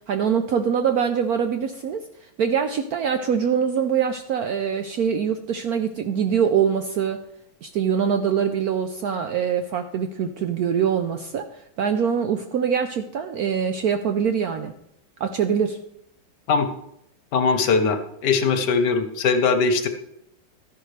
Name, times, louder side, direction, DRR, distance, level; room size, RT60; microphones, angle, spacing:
voice 1, 0.1-7.2 7.6-11.5 11.8-14.7 15.2-15.8, right 7 dB, 70° right, 7 dB, 0.9 m, -23 dB
voice 2, 17.3-19.9, left 5 dB, 65° left, 9 dB, 1.4 m, -21 dB
12.5 x 10.5 x 3.3 m, 0.77 s
omnidirectional pair, 2.1 m